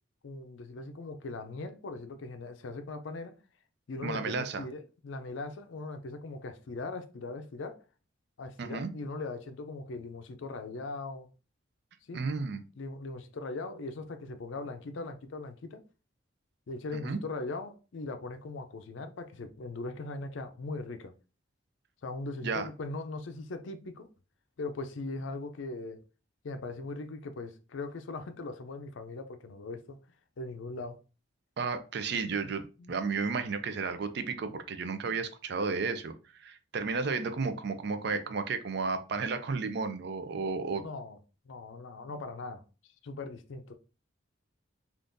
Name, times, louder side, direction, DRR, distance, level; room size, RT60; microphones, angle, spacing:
voice 1, 0.2-3.3 3.9-7.8 8.4-11.3 12.0-12.2 12.8-15.8 16.7-21.1 22.0-24.1 24.6-26.0 26.4-30.0 30.4-31.0 32.8-33.1 40.8-41.2 41.5-42.6 43.0-43.7, left 3 dB, 70° left, 0.4 m, -40 dB
voice 2, 4.0-4.6 8.6-8.9 12.1-12.6 17.0-17.2 22.4-22.7 31.6-40.8, right 4 dB, 55° right, 0.4 m, -33 dB
3.6 x 2.5 x 2.6 m
head